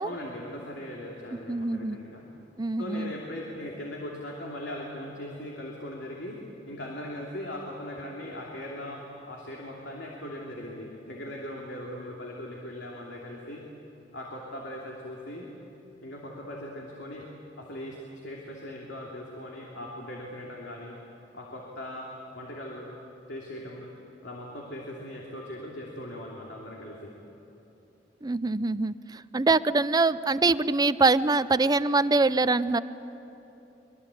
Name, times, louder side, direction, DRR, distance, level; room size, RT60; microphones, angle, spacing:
voice 1, 0.0-2.2 2.8-6.4 6.7-13.6 14.1-15.5 16.0-17.2 17.6-21.0 21.3-22.9 23.3-23.9 24.2-27.1, left 1 dB, 75° left, -2 dB, 2.9 m, -39 dB
voice 2, 1.5-2.0 2.6-3.1 28.2-32.8, right 3 dB, 20° right, 15 dB, 0.5 m, -24 dB
25.5 x 23.0 x 8.4 m, 3.0 s
head